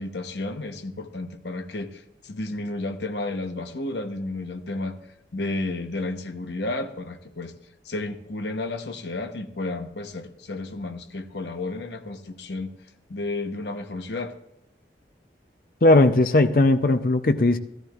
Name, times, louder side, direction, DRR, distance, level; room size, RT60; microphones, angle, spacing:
voice 1, 0.0-5.0 5.3-7.5 7.8-12.7 13.1-14.4, left 2 dB, 80° left, 6 dB, 1.0 m, -32 dB
voice 2, 15.8-17.6, left 2 dB, 50° left, 8 dB, 0.6 m, -18 dB
14.5 x 13.5 x 2.4 m, 0.86 s
head